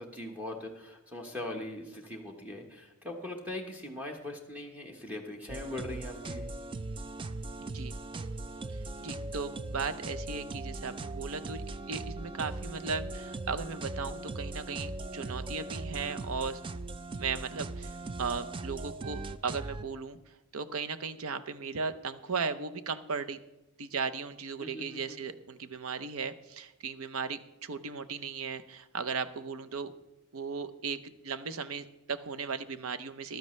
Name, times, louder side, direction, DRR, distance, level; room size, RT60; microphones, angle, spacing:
voice 1, 0.0-6.5 24.6-25.2, left 1 dB, 5° right, 0 dB, 1.2 m, -41 dB
sound 1, 5.5-19.8, right 2 dB, 25° right, 0.3 m, -39 dB
voice 2, 7.6-8.0 8.7-16.6 17.2-20.2 20.5-23.4 23.8-29.9 30.3-33.4, right 5 dB, 70° right, 10 dB, 0.7 m, -36 dB
14.5 x 12.0 x 3.2 m, 1.0 s
head